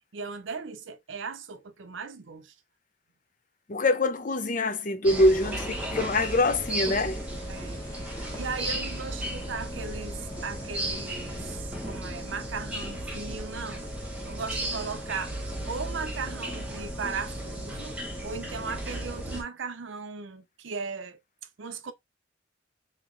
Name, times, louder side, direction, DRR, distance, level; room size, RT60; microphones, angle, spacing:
voice 1, 0.1-2.5 7.5-7.8 8.3-13.9 14.3-15.4 15.7-21.2 21.6-21.9, right 5 dB, 70° right, 0.6 m, -37 dB
voice 2, 3.7-7.2, left 2 dB, 40° left, 0.5 m, -24 dB
sound 1, 5.0-19.4, right 1 dB, 5° right, 1.0 m, -35 dB
sound 2, 5.3-11.6, equal, 20° left, 1.3 m, -48 dB
3.0 x 2.9 x 3.7 m
head